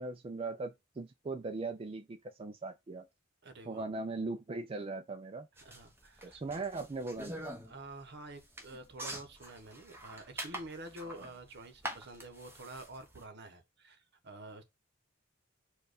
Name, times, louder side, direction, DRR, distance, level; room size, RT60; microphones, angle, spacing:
voice 1, 0.0-3.1 3.7-5.5 6.2-7.4, right 3 dB, 30° right, 0.4 m, -39 dB
voice 2, 3.4-3.9 5.6-6.4 7.6-14.6, right 2 dB, 60° right, 1.0 m, -48 dB
sound 1, 5.6-13.2, right 1 dB, 10° right, 1.0 m, -45 dB
4.6 x 2.4 x 4.9 m
head